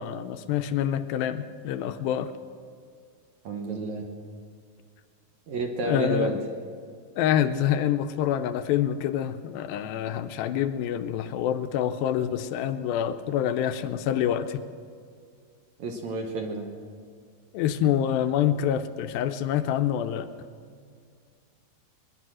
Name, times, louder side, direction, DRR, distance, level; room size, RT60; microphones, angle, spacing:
voice 1, 0.0-2.3 5.8-6.4 7.2-14.6 17.5-20.3, left 10 dB, 85° left, 9 dB, 2.4 m, -26 dB
voice 2, 3.4-4.0 5.5-6.4 15.8-16.7, right 2 dB, 65° right, 2 dB, 2.0 m, -30 dB
21.0 x 11.0 x 6.2 m, 2.1 s
omnidirectional pair, 4.3 m